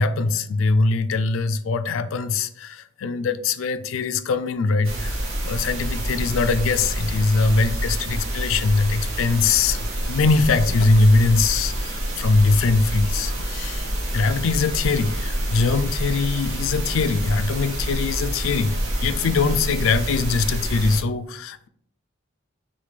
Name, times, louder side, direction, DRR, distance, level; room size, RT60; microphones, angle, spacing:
voice 1, 0.0-5.2 5.5-13.8 14.1-21.7, left 3 dB, 65° left, 0.4 m, -22 dB
sound 1, 4.8-21.0, right 1 dB, 65° right, 1.1 m, -27 dB
6.3 x 2.2 x 3.2 m
head